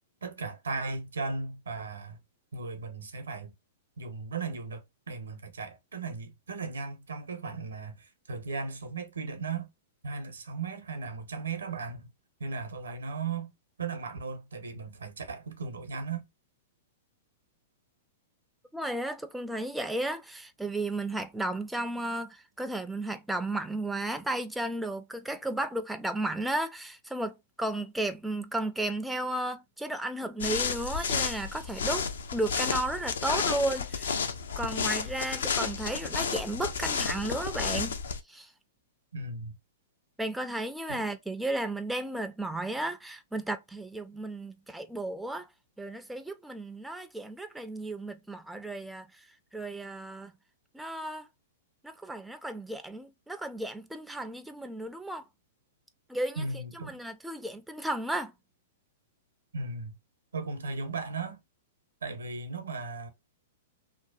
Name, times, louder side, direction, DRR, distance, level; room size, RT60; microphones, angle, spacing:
voice 1, 0.2-2.2 2.5-3.5 4.0-9.7 10.0-12.1 12.4-13.5 13.8-16.3 39.1-39.6 40.9-41.0 56.4-57.0 59.5-60.0 60.3-61.4 62.0-63.1, right 4 dB, 80° right, 0.7 m, -36 dB
voice 2, 18.7-34.3 34.6-38.0 38.3-38.5 40.2-45.5 45.8-49.2 49.5-50.3 50.7-51.3 51.8-55.2 56.1-56.4 56.9-58.3, right 1 dB, 5° right, 0.3 m, -34 dB
sound 1, 30.4-38.2, left 6 dB, 75° left, 0.5 m, -31 dB
2.7 x 2.2 x 2.3 m
hypercardioid pair, 110°, 0 cm